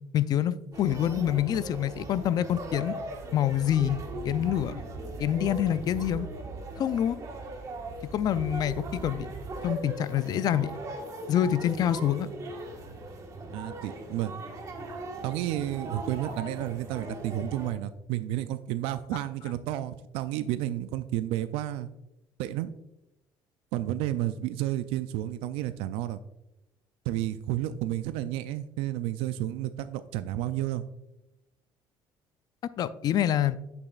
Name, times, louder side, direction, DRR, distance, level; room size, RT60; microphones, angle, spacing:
voice 1, 0.1-2.9 3.3-4.0 4.2-4.8 5.2-6.3 6.8-7.2 8.1-9.3 9.6-10.7 11.3-12.3 32.8-33.6, left 10 dB, 45° left, 15 dB, 0.4 m, -26 dB
sound 1, 0.7-17.7, right 2 dB, 35° right, 1.4 m, -39 dB
voice 2, 13.5-14.3 15.2-21.9 22.4-22.7 23.7-26.2 27.1-30.8, right 13 dB, 85° right, 12 dB, 0.4 m, -31 dB
8.0 x 6.9 x 2.4 m, 0.89 s
cardioid pair, 130°, 9 cm